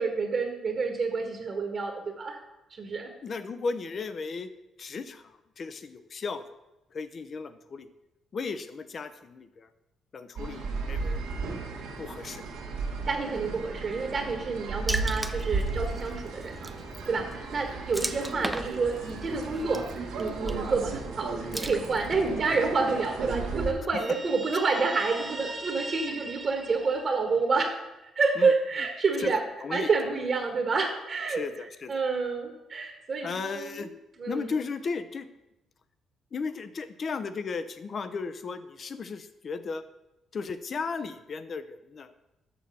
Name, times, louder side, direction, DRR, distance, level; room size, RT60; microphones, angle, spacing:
voice 1, 0.0-2.4 2.7-3.1 13.1-16.7 17.1-19.8 20.2-27.7 28.1-29.4 29.7-33.9 34.2-34.6, right 4 dB, 50° right, 3 dB, 1.4 m, -28 dB
voice 2, 3.2-4.5 4.8-6.4 6.9-7.9 8.3-9.7 10.1-11.2 12.0-12.4 28.4-28.5 29.2-29.3 29.6-30.2 31.3-32.0 33.2-33.9 34.3-35.3 36.3-39.8 40.3-42.1, left 4 dB, 45° left, 12 dB, 0.7 m, -35 dB
sound 1, 10.4-23.7, right 4 dB, 90° right, 1.6 m, -35 dB
Water / Splash splatter, 14.9-22.3, right 1 dB, 5° right, 0.6 m, -38 dB
Guitar, 24.0-27.6, right 2 dB, 25° right, 0.9 m, -39 dB
7.0 x 6.2 x 6.8 m, 0.96 s
cardioid pair, 90°, 0 cm